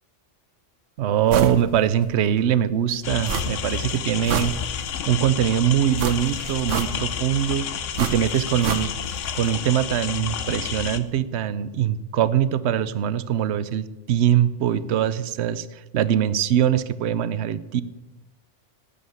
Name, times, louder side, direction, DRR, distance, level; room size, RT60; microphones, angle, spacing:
voice 1, 1.0-4.5 5.1-7.7 8.0-8.9 9.3-17.8, right 10 dB, 70° right, 15 dB, 0.9 m, -22 dB
sound 1, 1.3-1.6 2.0-2.1 3.2-3.8 4.1-5.0 6.0-7.2 7.9-9.2 9.5-9.6, right 6 dB, 85° right, 1.3 m, -28 dB
sound 2, 3.0-11.0, left 8 dB, 85° left, 1.1 m, -30 dB
13.0 x 8.5 x 7.9 m, 1.1 s
omnidirectional pair, 1.2 m